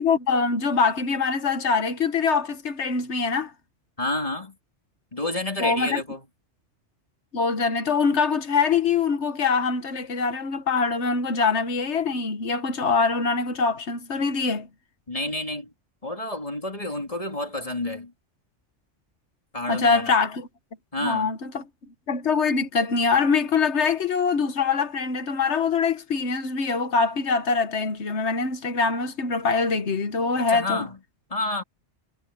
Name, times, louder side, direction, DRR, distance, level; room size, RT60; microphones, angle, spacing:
voice 1, 0.0-3.5 5.6-6.0 7.3-14.7 19.7-20.5 21.0-21.6 22.1-30.8, left 5 dB, 70° left, 1.6 m, -24 dB
voice 2, 4.0-4.5 5.1-6.2 15.1-15.7 16.0-18.1 19.5-20.1 20.9-21.4 30.4-31.0 31.3-31.6, left 2 dB, 30° left, 2.7 m, -29 dB
omnidirectional pair, 1.2 m